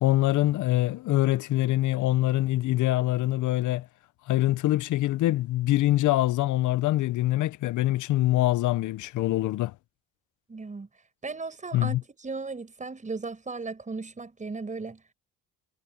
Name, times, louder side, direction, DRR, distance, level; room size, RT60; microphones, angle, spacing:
voice 1, 0.0-3.8 4.3-9.7 11.7-12.0, left 15 dB, 65° left, 0.9 m, -24 dB
voice 2, 10.5-10.9 11.2-15.0, right 4 dB, 25° right, 6.1 m, -36 dB
cardioid pair, 95°, 32 cm